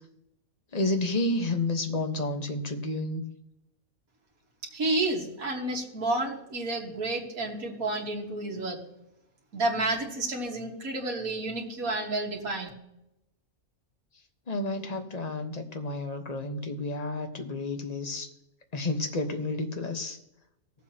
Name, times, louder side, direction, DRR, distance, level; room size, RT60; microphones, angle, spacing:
voice 1, 0.7-3.2 14.5-18.3 18.7-20.2, left 2 dB, 30° left, 4 dB, 1.2 m, -30 dB
voice 2, 4.7-8.8 9.5-12.7, right 2 dB, 80° right, -1 dB, 2.1 m, -30 dB
19.0 x 7.6 x 2.9 m, 0.85 s
omnidirectional pair, 1.5 m